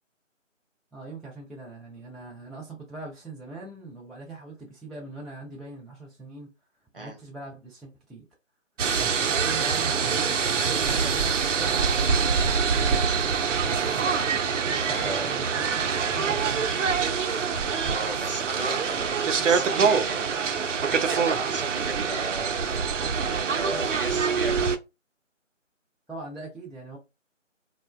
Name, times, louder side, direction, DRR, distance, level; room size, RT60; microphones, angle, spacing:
voice 1, 0.9-6.5 7.0-8.2 9.1-13.0 14.7-16.7 23.7-24.0 26.1-27.0, right 2 dB, ahead, 0.3 m, -41 dB
sound 1, 8.8-24.8, right 6 dB, 70° right, 0.5 m, -25 dB
voice 2, 14.9-15.3 17.9-20.5 20.9-22.7 23.2-24.6, right 3 dB, 45° right, 0.8 m, -35 dB
2.7 x 2.1 x 2.2 m
figure-of-eight pair, 165°, 38 cm